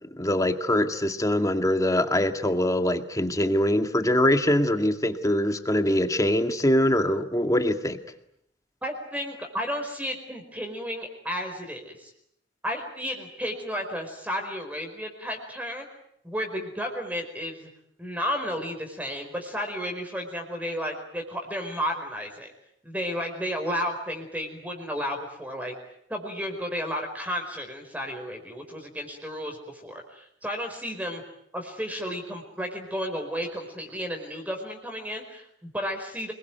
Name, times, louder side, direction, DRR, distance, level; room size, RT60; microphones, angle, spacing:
voice 1, 0.0-8.0, left 1 dB, 20° left, 7 dB, 2.0 m, -23 dB
voice 2, 8.8-12.1 12.6-15.9 16.2-17.7 18.0-22.5 22.8-25.7 26.1-31.2 31.5-36.3, equal, 10° right, 3 dB, 4.9 m, -33 dB
28.0 x 22.0 x 9.2 m, 0.75 s
head